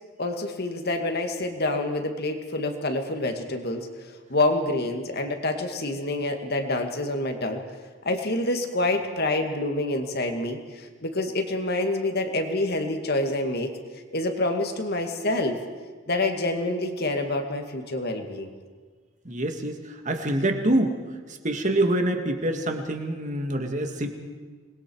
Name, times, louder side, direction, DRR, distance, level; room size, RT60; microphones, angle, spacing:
voice 1, 0.2-3.9 4.3-7.6 8.0-13.8 14.1-15.6 16.1-18.5, left 2 dB, 50° left, 4 dB, 2.4 m, -27 dB
voice 2, 19.3-20.9 21.4-24.1, right 1 dB, 35° right, 4 dB, 2.2 m, -25 dB
27.0 x 21.0 x 4.9 m, 1.5 s
head